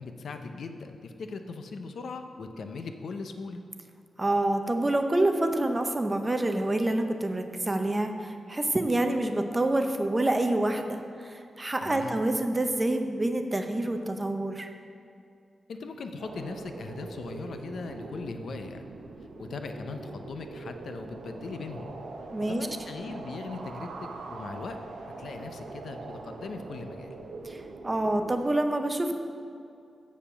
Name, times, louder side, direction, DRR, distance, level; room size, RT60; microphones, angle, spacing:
voice 1, 0.0-3.6 11.8-12.2 15.7-18.8 19.4-21.9 22.4-24.8 25.2-27.2, left 4 dB, 70° left, 7 dB, 0.6 m, -39 dB
voice 2, 4.2-14.7 22.3-22.7 27.4-29.2, right 1 dB, 20° right, 6 dB, 0.6 m, -27 dB
sound 1, 16.2-28.4, right 3 dB, 85° right, 0.8 m, -43 dB
7.2 x 7.0 x 7.1 m, 2.4 s
wide cardioid pair, 150°, 0 cm